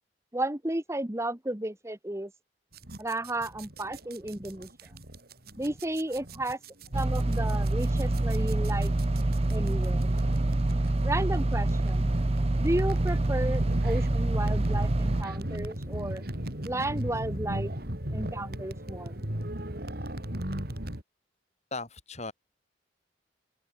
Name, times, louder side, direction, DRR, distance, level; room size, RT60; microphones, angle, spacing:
voice 1, 0.3-2.3 3.0-4.9 5.6-6.6 6.9-8.9 9.5-10.1 11.0-12.1 12.6-16.2 16.6-17.7 18.1-19.2, right 1 dB, 15° right, 1.3 m, -33 dB
sound 1, 2.7-21.0, right 1 dB, 55° right, 4.5 m, -37 dB
sound 2, 6.9-15.2, right 2 dB, 35° right, 0.7 m, -26 dB
voice 2, 21.7-22.3, left 3 dB, 40° left, 7.1 m, -37 dB
open air
head